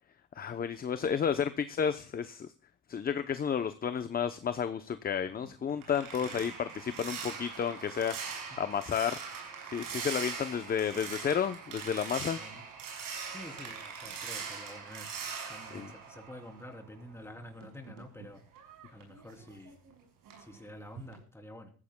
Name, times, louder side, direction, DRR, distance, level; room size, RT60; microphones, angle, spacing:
voice 1, 0.4-2.5 2.9-9.2 9.7-12.4 15.7-15.9, left 7 dB, 30° left, 11 dB, 0.7 m, -32 dB
sound 1, 5.3-16.9 17.3-19.9 20.3-20.6 21.0-21.2, right 6 dB, 80° right, 6.1 m, -42 dB
voice 2, 13.3-15.2 15.5-18.4 18.9-19.8 20.4-21.7, left 1 dB, 10° left, 3 dB, 3.1 m, -48 dB
20.5 x 14.5 x 2.2 m, 0.39 s
cardioid pair, 125°, 32 cm